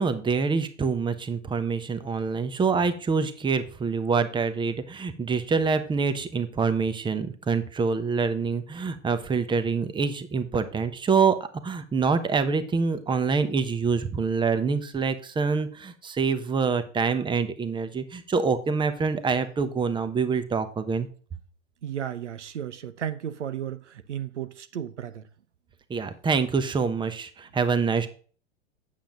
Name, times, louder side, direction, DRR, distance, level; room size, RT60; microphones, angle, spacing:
voice 1, 0.0-21.1 25.9-28.1, right 5 dB, 15° right, 1.0 m, -26 dB
voice 2, 21.8-25.3, right 9 dB, 85° right, 0.8 m, -34 dB
8.8 x 7.4 x 3.8 m
hypercardioid pair, 100°, 34 cm